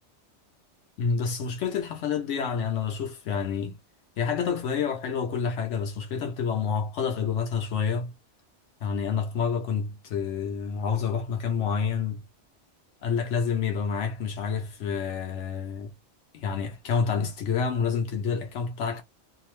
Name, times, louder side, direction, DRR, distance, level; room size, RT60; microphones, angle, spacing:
voice 1, 1.0-3.8 4.2-8.1 8.8-12.2 13.0-15.9 16.3-19.0, left 6 dB, 80° left, 1.0 m, -28 dB
2.7 x 2.0 x 3.0 m
omnidirectional pair, 1.2 m